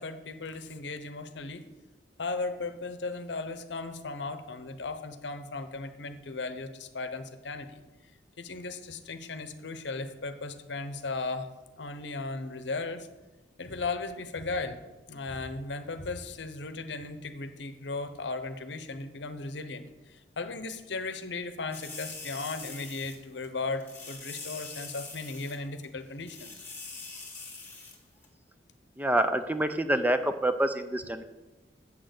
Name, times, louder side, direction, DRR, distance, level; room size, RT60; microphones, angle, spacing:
voice 1, 0.0-1.6 2.2-7.8 8.4-11.5 11.8-13.1 13.6-14.8 15.1-26.5, left 3 dB, 75° left, 10 dB, 0.8 m, -36 dB
sound 1, 21.7-23.2 23.4-23.5 23.8-25.6 25.8-25.9 26.2-28.0 28.2-28.3, left 4 dB, 10° left, 1.6 m, -43 dB
voice 2, 29.0-31.2, right 1 dB, 10° right, 9 dB, 0.5 m, -27 dB
7.4 x 6.5 x 8.0 m, 1.1 s
head